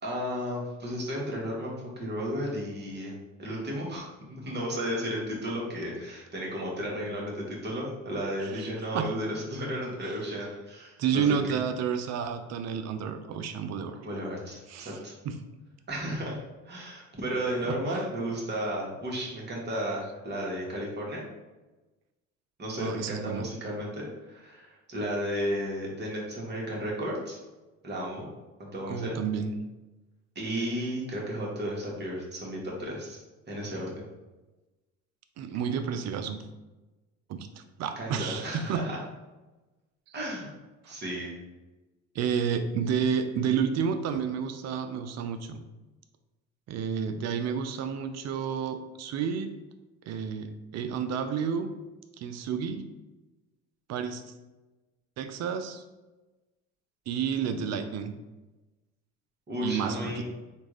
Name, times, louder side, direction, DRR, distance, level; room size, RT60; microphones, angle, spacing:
voice 1, 0.0-3.1 3.4-11.4 14.0-15.1 15.9-16.4 16.6-21.2 22.6-27.4 27.8-28.3 28.6-29.2 30.3-33.2 33.5-34.1 38.0-39.0 40.1-40.5 40.9-41.3 59.5-60.2, equal, 30° right, -3 dB, 1.3 m, -33 dB
voice 2, 8.4-9.2 11.0-14.0 14.7-15.0 15.2-15.4 17.6-17.8 22.7-23.5 28.9-29.5 35.4-36.4 37.3-38.9 40.8-41.0 42.1-45.6 46.7-49.5 50.1-51.7 52.2-52.8 53.9-54.2 55.2-55.8 57.1-58.1 59.6-60.2, right 7 dB, 50° right, 8 dB, 0.5 m, -30 dB
3.4 x 2.4 x 3.1 m, 1.1 s
supercardioid pair, 75°, 35 cm